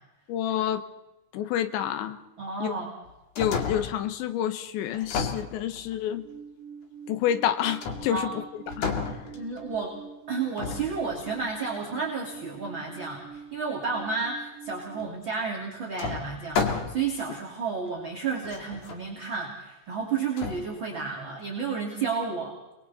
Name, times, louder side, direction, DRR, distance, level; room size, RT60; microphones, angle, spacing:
voice 1, 0.3-0.8 1.3-2.2 2.6-2.7 3.4-6.3 7.1-8.4 8.8-8.9, left 10 dB, 80° left, 10 dB, 3.3 m, -28 dB
voice 2, 2.4-2.9 8.1-8.3 9.3-9.9 10.3-22.6, right 5 dB, 30° right, -2 dB, 2.7 m, -31 dB
sound 1, 3.1-4.1 4.9-6.1 7.8-8.3 8.7-9.8 10.6-11.5 15.0-15.1 16.0-17.2 17.9-18.0 18.4-19.0 20.4-20.6, left 5 dB, 50° left, 2.9 m, -32 dB
Alarm, 6.2-15.1, right 6 dB, 70° right, 3.6 m, -45 dB
29.5 x 21.5 x 4.2 m, 0.97 s
omnidirectional pair, 5.3 m